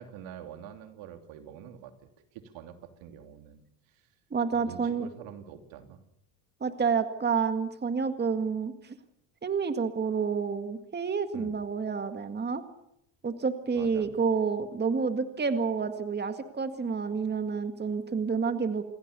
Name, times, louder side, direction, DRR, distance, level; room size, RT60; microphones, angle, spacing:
voice 1, 0.0-4.1 4.5-6.0 11.3-11.5 13.7-14.2, right 9 dB, 70° right, 7 dB, 3.3 m, -46 dB
voice 2, 4.3-5.1 6.6-9.0 9.4-12.6 13.2-18.8, right 5 dB, 20° right, 8 dB, 2.0 m, -29 dB
28.0 x 20.5 x 6.9 m, 0.78 s
supercardioid pair, 110°, 48 cm